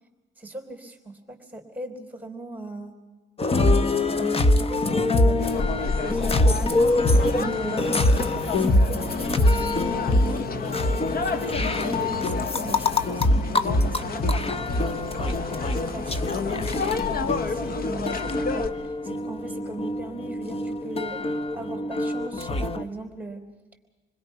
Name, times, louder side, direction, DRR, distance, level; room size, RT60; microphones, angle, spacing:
voice 1, 0.4-3.0 3.5-3.9 4.2-10.7 11.0-14.7 15.2-15.3 15.7-23.5, right 2 dB, 10° right, 4 dB, 3.4 m, -38 dB
sound 1, 3.4-22.8, left 2 dB, 30° left, 1.0 m, -24 dB
sound 2, 5.4-18.7, left 4 dB, 50° left, 1.3 m, -31 dB
27.5 x 21.0 x 5.7 m, 1.2 s
cardioid pair, 90°, 20 cm